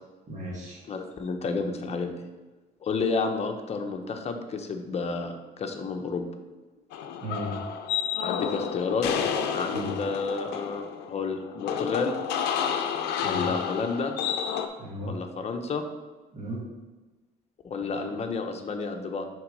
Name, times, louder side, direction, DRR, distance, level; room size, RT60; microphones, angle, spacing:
voice 1, 0.3-0.8 7.2-7.5 9.7-10.0 13.2-13.5 14.8-15.1 16.3-16.6 17.9-18.0, equal, 45° right, -4 dB, 1.6 m, -35 dB
voice 2, 0.9-2.1 2.8-6.2 8.2-9.1 9.5-12.1 13.2-14.1 15.0-15.8 17.6-19.3, left 4 dB, 40° left, 4 dB, 0.8 m, -30 dB
sound 1, 6.9-14.7, left 8 dB, 85° left, 0.6 m, -30 dB
5.8 x 3.7 x 5.3 m, 1.2 s
cardioid pair, 110°, 17 cm